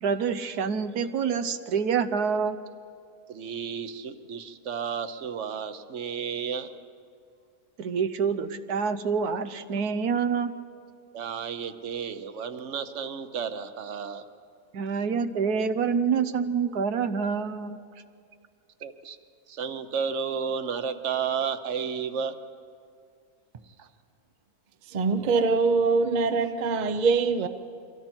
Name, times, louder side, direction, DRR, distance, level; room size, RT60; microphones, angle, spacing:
voice 1, 0.0-2.6 7.8-10.5 14.7-17.8, right 6 dB, 85° right, 1.4 m, -27 dB
voice 2, 3.3-6.7 11.1-14.2 18.8-19.2 19.5-22.4 23.8-23.9, right 6 dB, 55° right, 1.2 m, -32 dB
voice 3, 24.9-27.5, right 4 dB, 40° right, 0.7 m, -23 dB
30.0 x 24.0 x 4.5 m
omnidirectional pair, 1.6 m